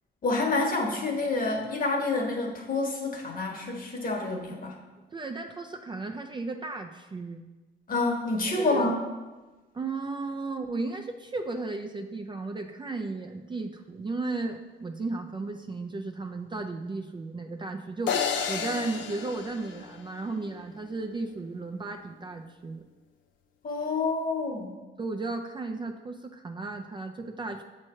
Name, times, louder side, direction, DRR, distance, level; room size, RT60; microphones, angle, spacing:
voice 1, 0.2-4.7 7.9-9.0 23.6-24.8, left 3 dB, 45° left, 1 dB, 1.2 m, -28 dB
voice 2, 5.1-7.5 8.6-8.9 9.7-18.2 18.5-22.8 25.0-27.6, right 3 dB, 25° right, 4 dB, 0.4 m, -34 dB
sound 1, 18.1-20.4, left 7 dB, 70° left, 0.6 m, -31 dB
7.3 x 3.2 x 4.4 m, 1.2 s
cardioid pair, 90°, 20 cm